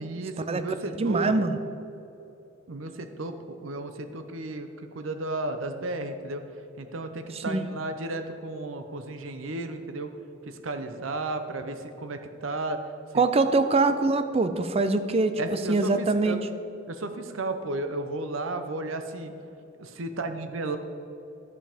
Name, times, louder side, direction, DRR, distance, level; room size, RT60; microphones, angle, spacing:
voice 1, 0.0-1.3 2.7-6.4 6.8-10.1 10.5-12.8 13.1-13.2 15.4-16.4 16.9-19.3 19.8-20.8, right 2 dB, 85° right, 8 dB, 0.7 m, -33 dB
voice 2, 1.0-1.6 7.5-7.6 13.1-15.4 15.7-16.4, right 3 dB, 30° right, 10 dB, 0.5 m, -23 dB
12.5 x 5.3 x 5.2 m, 2.8 s
head